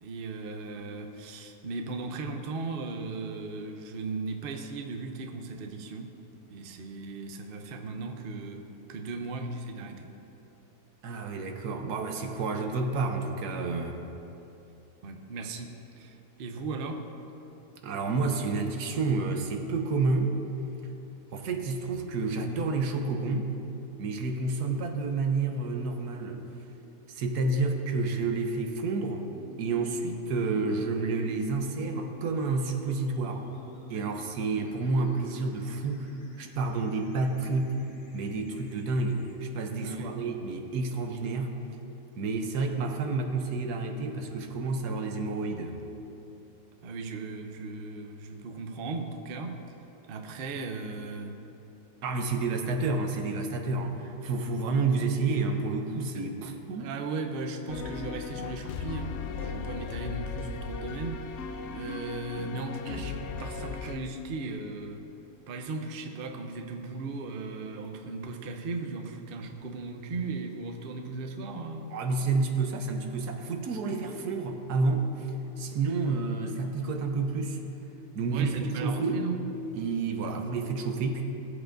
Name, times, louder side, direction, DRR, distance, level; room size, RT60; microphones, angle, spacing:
voice 1, 0.0-6.2 6.5-10.1 15.0-17.1 39.8-40.2 46.8-49.6 50.1-51.4 56.1-56.4 56.7-65.1 65.5-71.9 78.3-79.5, right 3 dB, 55° right, 5 dB, 0.6 m, -37 dB
voice 2, 11.0-14.1 17.8-20.4 21.3-23.5 24.0-26.4 27.1-29.3 29.6-33.5 33.9-36.1 36.4-37.7 38.1-41.5 42.2-45.8 52.0-56.8 71.9-75.3 75.6-77.6 78.1-78.5 78.8-79.3 79.7-81.2, right 3 dB, 75° right, 4 dB, 1.3 m, -29 dB
sound 1, 29.3-39.3, left 1 dB, 60° left, 1.6 m, -52 dB
sound 2, 57.7-64.0, left 5 dB, 85° left, 0.6 m, -37 dB
17.0 x 7.8 x 2.6 m, 2.9 s
omnidirectional pair, 1.8 m